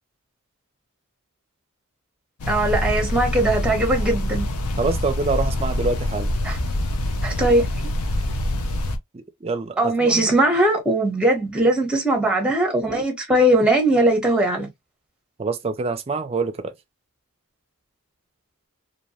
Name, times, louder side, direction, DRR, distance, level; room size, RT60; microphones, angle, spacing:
sound 1, 2.4-9.0, left 1 dB, 80° left, 0.5 m, -25 dB
voice 1, 2.5-4.5 6.4-6.6 7.2-7.7 9.8-14.7, right 1 dB, 5° right, 0.8 m, -20 dB
voice 2, 4.8-6.3 9.1-10.3 15.4-16.7, right 3 dB, 25° right, 0.4 m, -26 dB
2.7 x 2.1 x 2.7 m
head